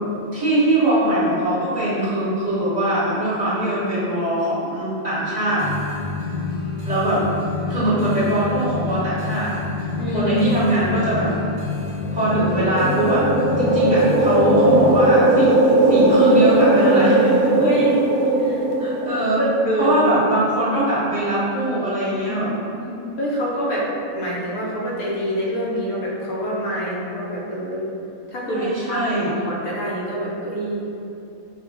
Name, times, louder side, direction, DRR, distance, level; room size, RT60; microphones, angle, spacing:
voice 1, 0.3-5.7 6.8-7.2 7.7-9.6 10.1-11.3 12.1-17.5 18.8-19.5 19.8-22.5 28.4-29.3, right 1 dB, 30° right, -13 dB, 1.6 m, -21 dB
sound 1, 5.6-15.2, left 4 dB, 55° right, 1.4 m, -28 dB
voice 2, 10.0-10.4 17.6-18.0 18.4-18.6 19.4-20.0 22.2-22.4 22.8-23.9 24.1-27.9 28.3-30.8, right 1 dB, 80° left, -5 dB, 1.4 m, -26 dB
sound 2, 12.1-19.8, right 2 dB, 85° right, 1.1 m, -18 dB
5.8 x 2.4 x 3.5 m, 2.8 s
omnidirectional pair, 1.5 m